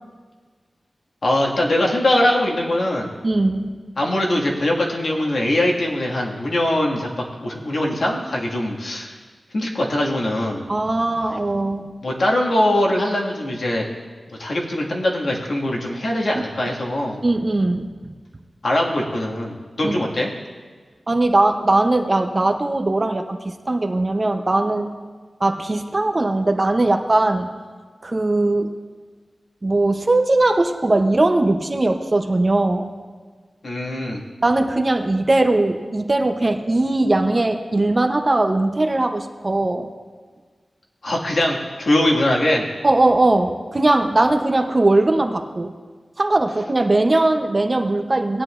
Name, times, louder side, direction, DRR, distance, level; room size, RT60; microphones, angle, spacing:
voice 1, 1.2-3.1 4.0-9.1 9.5-10.7 12.0-13.9 14.3-17.2 18.6-20.3 33.6-34.2 41.0-42.7, left 1 dB, 70° left, -2 dB, 1.9 m, -21 dB
voice 2, 3.2-3.7 10.7-11.9 17.2-17.9 19.8-19.9 21.1-24.9 25.4-27.5 28.0-28.7 29.6-32.9 34.4-39.9 42.8-45.7 46.2-48.4, right 2 dB, 30° right, 5 dB, 0.7 m, -19 dB
19.0 x 9.7 x 2.5 m, 1.5 s
wide cardioid pair, 110°, 0 cm